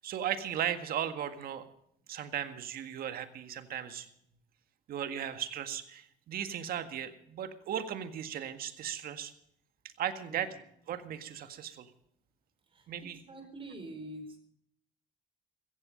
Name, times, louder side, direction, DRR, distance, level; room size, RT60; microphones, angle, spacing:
voice 1, 0.0-1.6 2.1-4.1 4.9-9.3 10.0-10.5 10.9-11.9 12.9-13.2, right 9 dB, 60° right, 9 dB, 1.8 m, -36 dB
voice 2, 13.3-14.4, right 1 dB, 30° right, 6 dB, 4.8 m, -45 dB
15.5 x 15.5 x 5.2 m, 0.70 s
cardioid pair, 110°, 17 cm